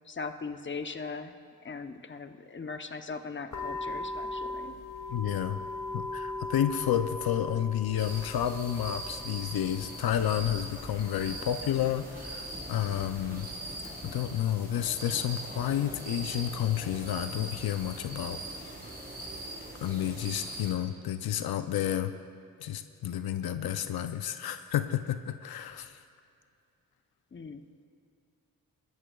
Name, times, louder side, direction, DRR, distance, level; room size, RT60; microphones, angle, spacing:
voice 1, 0.1-1.3 1.6-4.7 27.3-27.6, left 4 dB, 30° left, 7 dB, 0.8 m, -39 dB
sound 1, 3.5-14.1, left 2 dB, 60° left, 1.8 m, -41 dB
voice 2, 5.1-5.6 5.9-13.5 14.0-18.4 19.8-22.1 22.6-26.0, left 10 dB, 85° left, 10 dB, 0.5 m, -30 dB
sound 2, 8.0-20.7, right 1 dB, 25° right, 3.6 m, -41 dB
21.5 x 13.5 x 2.3 m, 2.5 s
cardioid pair, 65°, 36 cm